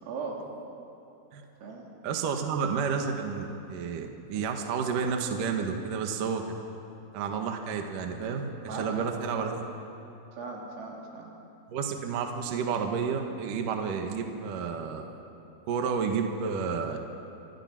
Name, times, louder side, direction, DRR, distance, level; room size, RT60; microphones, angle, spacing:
voice 1, 0.0-0.4 1.6-1.9 8.7-9.1 9.3-9.5 10.4-11.3, right 4 dB, 75° right, -2 dB, 6.1 m, -38 dB
voice 2, 2.0-6.6 7.1-9.6 11.7-15.1 15.7-17.0, right 6 dB, 60° right, 3 dB, 2.4 m, -31 dB
27.5 x 26.0 x 6.1 m, 2.8 s
omnidirectional pair, 5.9 m